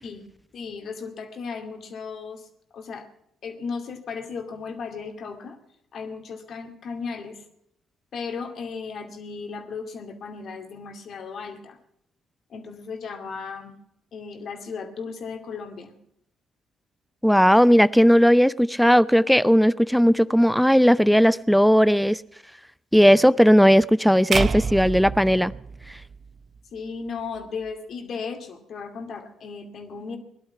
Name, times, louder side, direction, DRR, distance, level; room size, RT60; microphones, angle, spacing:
voice 1, 0.5-2.5 2.7-3.1 3.4-5.6 5.9-7.4 8.1-11.8 12.5-13.7 14.1-15.9 26.7-30.2, left 5 dB, 55° left, 2.4 m, -35 dB
voice 2, 17.2-22.2 22.9-25.5, equal, ahead, 0.5 m, -17 dB
sound 1, 24.3-26.6, right 5 dB, 45° right, 0.7 m, -28 dB
19.0 x 11.5 x 5.8 m
hypercardioid pair, 45°, 0 cm